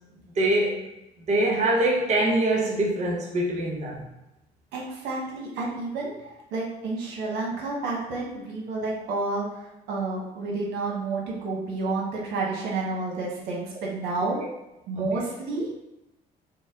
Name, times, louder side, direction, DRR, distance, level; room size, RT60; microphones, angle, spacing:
voice 1, 0.4-0.9 1.3-4.0 14.2-14.5 15.0-15.3, right 1 dB, 40° right, -1 dB, 0.8 m, -24 dB
voice 2, 4.7-6.1 6.5-14.4 14.9-15.7, right 3 dB, 85° right, -3 dB, 1.2 m, -30 dB
5.1 x 2.2 x 3.6 m, 0.91 s
cardioid pair, 110°, 17 cm